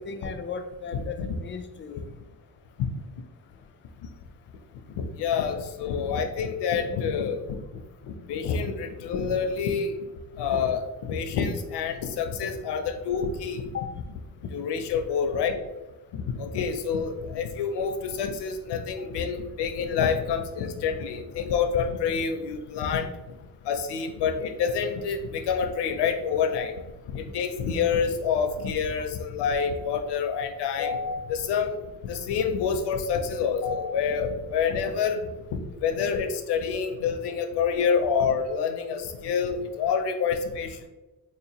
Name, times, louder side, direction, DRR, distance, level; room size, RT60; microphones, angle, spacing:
voice 1, 0.0-2.1 13.7-13.9, left 5 dB, 30° left, 7 dB, 0.4 m, -36 dB
voice 2, 0.9-1.3 5.0-7.6 8.0-10.0 10.4-13.6 14.5-15.6 16.1-23.1 23.6-26.7 27.1-31.8 32.0-35.2 35.5-40.9, left 6 dB, 90° left, 5 dB, 0.6 m, -27 dB
4.0 x 2.9 x 2.8 m, 1.1 s
cardioid pair, 100°, 40 cm